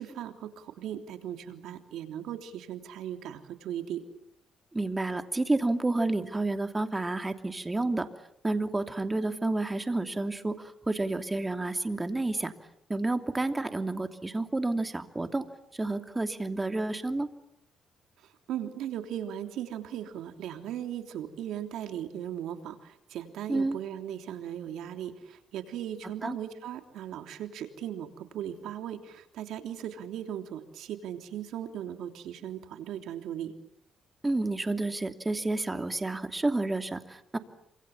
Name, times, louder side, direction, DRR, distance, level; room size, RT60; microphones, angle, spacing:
voice 1, 0.0-4.0 18.2-33.5, right 10 dB, 85° right, 6 dB, 3.3 m, -38 dB
voice 2, 4.7-8.1 8.4-12.5 12.9-15.5 15.7-17.3 23.5-23.8 26.2-26.4 34.2-37.4, right 2 dB, 15° right, 7 dB, 2.8 m, -30 dB
27.5 x 26.5 x 7.3 m, 0.74 s
cardioid pair, 90°, 0 cm